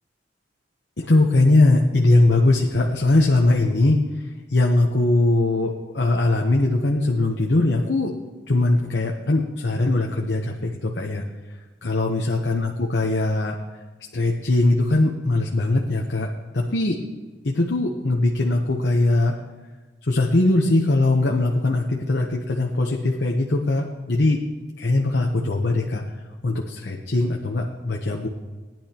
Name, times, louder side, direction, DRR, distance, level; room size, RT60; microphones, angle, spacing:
voice 1, 1.0-8.1 8.5-11.2 11.8-13.6 14.1-17.0 17.4-19.4 20.0-24.4 24.8-26.0 26.4-28.3, left 2 dB, 65° left, 0 dB, 1.0 m, -21 dB
19.0 x 10.5 x 2.9 m, 1.3 s
head